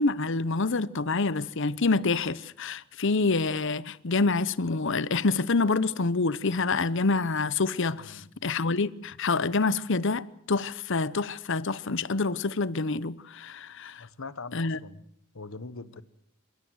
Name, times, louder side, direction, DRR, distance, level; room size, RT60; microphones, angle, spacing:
voice 1, 0.0-14.0 14.5-14.8, left 3 dB, 65° left, 0.9 m, -27 dB
voice 2, 8.0-8.3 14.0-15.0 15.3-16.0, left 3 dB, 85° left, 1.3 m, -42 dB
29.0 x 17.0 x 8.0 m
head